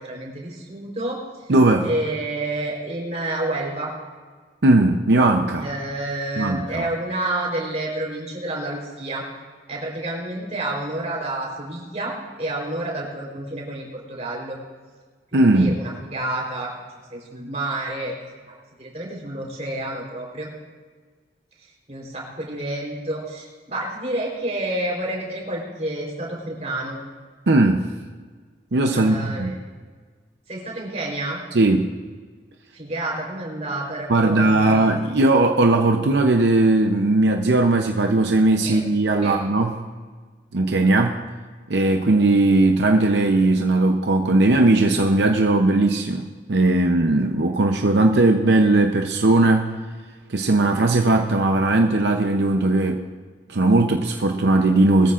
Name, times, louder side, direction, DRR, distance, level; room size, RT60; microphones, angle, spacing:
voice 1, 0.0-1.5 1.8-3.9 5.6-9.3 9.7-12.1 12.4-14.6 15.3-16.7 17.1-18.1 18.5-20.5 21.9-27.0 28.9-29.6 30.5-31.4 32.7-34.9 38.6-38.8 39.2-39.4, right 1 dB, 40° right, -2 dB, 3.8 m, -29 dB
voice 2, 1.5-1.9 4.6-5.7 6.4-6.9 15.3-15.8 27.5-27.9 28.7-29.5 31.5-31.9 34.1-39.7 40.5-41.2 41.7-49.7 50.3-53.0 53.5-55.1, right 2 dB, 80° right, 3 dB, 0.7 m, -18 dB
21.0 x 14.0 x 2.5 m, 1.5 s
head